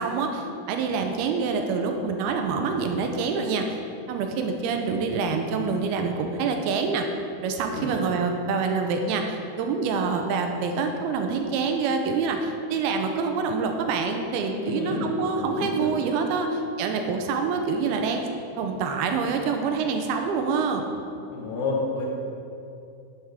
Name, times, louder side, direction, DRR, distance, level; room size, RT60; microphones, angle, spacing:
voice 1, 0.0-3.8 4.1-7.1 7.4-18.3 18.6-20.9, right 4 dB, 90° right, 4 dB, 2.6 m, -26 dB
voice 2, 14.6-15.1 15.4-15.9 21.3-22.1, left 3 dB, 60° left, -2 dB, 2.4 m, -30 dB
10.5 x 8.0 x 3.6 m, 2.6 s
omnidirectional pair, 4.5 m